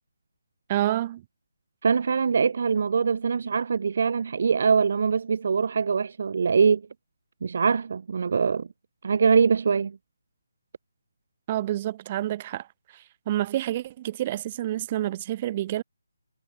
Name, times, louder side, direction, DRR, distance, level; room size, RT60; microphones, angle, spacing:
voice 1, 0.7-1.2 11.5-12.7 12.9-15.8, right 13 dB, 20° right, 2.0 m, -28 dB
voice 2, 1.8-6.8 7.4-8.7 9.0-10.0, right 5 dB, 45° right, 1.3 m, -23 dB
hypercardioid pair, 175°, 0 cm